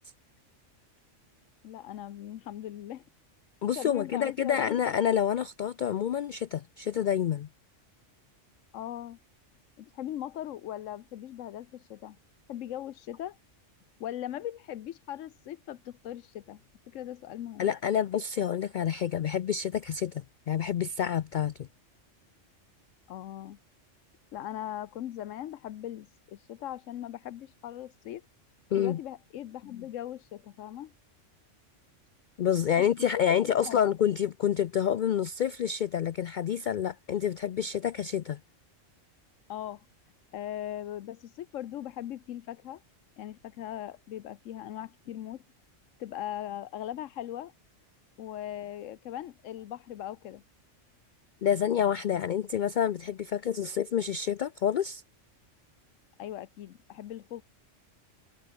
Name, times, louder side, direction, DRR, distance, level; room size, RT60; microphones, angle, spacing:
voice 1, 1.6-3.0 3.8-4.9 8.7-9.2 9.8-12.2 12.5-13.4 14.0-17.7 23.1-23.6 24.3-28.2 28.8-30.9 33.2-34.0 39.5-39.8 40.3-42.8 43.2-45.4 46.0-47.5 48.2-50.4 56.2-57.4, left 12 dB, 85° left, 1.1 m, -39 dB
voice 2, 3.6-7.5 17.6-21.7 28.7-29.0 32.4-38.4 51.4-55.0, left 9 dB, 65° left, 0.5 m, -28 dB
omnidirectional pair, 1.3 m